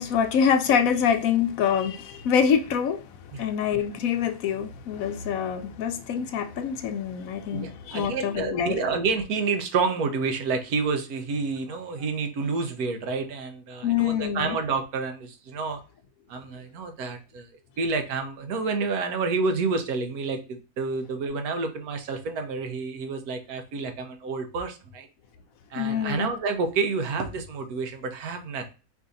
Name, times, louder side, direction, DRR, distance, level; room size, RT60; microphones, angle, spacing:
voice 1, 0.0-8.8 13.8-14.6 25.7-26.3, left 7 dB, 70° left, 0.9 m, -25 dB
voice 2, 7.5-15.8 16.3-17.5 17.8-25.1 25.7-28.7, right 4 dB, 80° right, 1.3 m, -29 dB
4.8 x 2.7 x 3.9 m
omnidirectional pair, 1.6 m